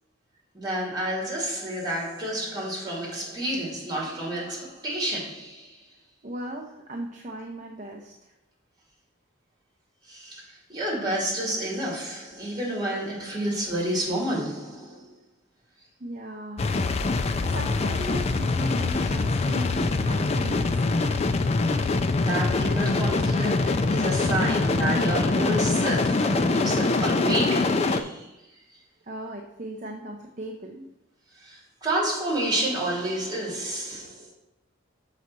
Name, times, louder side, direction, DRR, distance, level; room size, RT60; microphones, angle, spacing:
voice 1, 0.5-5.8 10.0-15.1 22.2-28.3 31.4-34.3, right 1 dB, 20° right, 2.3 m, -30 dB
voice 2, 6.2-8.3 16.0-16.7 17.5-21.1 29.0-30.9, equal, 35° right, 0.6 m, -37 dB
sound 1, 16.6-28.0, left 3 dB, 30° left, 0.3 m, -24 dB
6.3 x 4.1 x 5.9 m
head